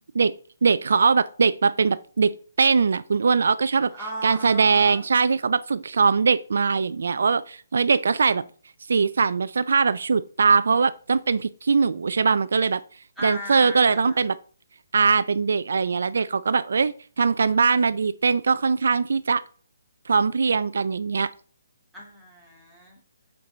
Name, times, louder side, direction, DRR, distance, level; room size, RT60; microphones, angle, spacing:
voice 1, 0.6-3.9 4.2-8.4 8.9-12.8 13.2-14.4 14.9-19.4 20.1-21.3, right 5 dB, 70° right, 0.3 m, -21 dB
voice 2, 3.9-5.0 13.2-14.2 21.9-23.0, right 1 dB, ahead, 2.4 m, -37 dB
8.3 x 4.5 x 3.8 m
hypercardioid pair, 155°, 0 cm